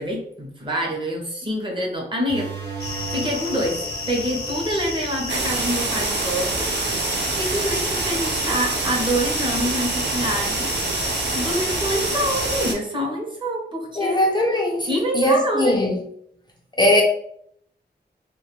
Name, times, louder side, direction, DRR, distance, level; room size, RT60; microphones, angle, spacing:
voice 1, 0.0-6.7 7.4-10.7 11.3-14.2 14.9-15.8, equal, 30° right, -1 dB, 0.7 m, -26 dB
sound 1, 2.3-7.5, right 4 dB, 70° right, 0.9 m, -37 dB
sound 2, 2.8-12.7, left 3 dB, 60° left, 0.6 m, -31 dB
sound 3, 5.3-12.7, right 3 dB, 90° right, 0.4 m, -26 dB
voice 2, 14.0-16.0 16.7-17.0, left 1 dB, 25° left, -1 dB, 0.3 m, -20 dB
2.3 x 2.2 x 2.9 m, 0.70 s
wide cardioid pair, 135°, 18 cm